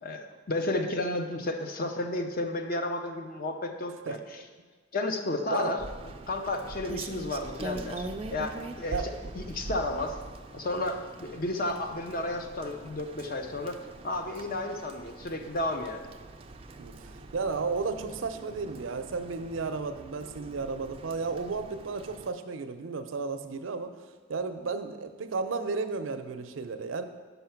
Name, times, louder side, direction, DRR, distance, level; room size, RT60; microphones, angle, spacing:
voice 1, 0.0-4.4 4.9-5.8 6.3-10.2 10.5-13.8 14.0-16.1, left 2 dB, 45° left, 5 dB, 0.6 m, -32 dB
Rain, 5.8-22.3, right 2 dB, 30° right, 0.3 m, -43 dB
voice 2, 16.8-23.9 24.3-27.0, right 4 dB, 85° right, 9 dB, 0.5 m, -33 dB
5.7 x 5.6 x 5.8 m, 1.4 s
head